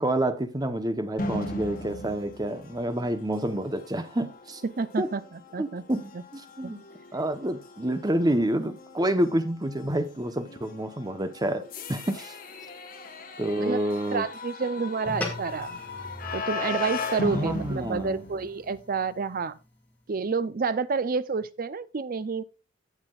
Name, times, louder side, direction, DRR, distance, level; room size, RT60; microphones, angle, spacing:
voice 1, 0.0-4.6 5.0-5.1 5.6-6.8 7.1-11.6 11.9-12.4 13.4-14.3 17.3-18.2, right 1 dB, 20° right, 0.9 m, -28 dB
sound 1, 1.2-18.9, left 3 dB, 45° left, 1.6 m, -38 dB
voice 2, 4.6-5.8 6.6-6.7 13.6-13.8 14.1-15.8 16.3-19.6 20.1-22.4, right 4 dB, 45° right, 0.5 m, -29 dB
sound 2, 15.1-19.7, left 2 dB, 10° left, 2.3 m, -40 dB
16.5 x 6.0 x 2.4 m
head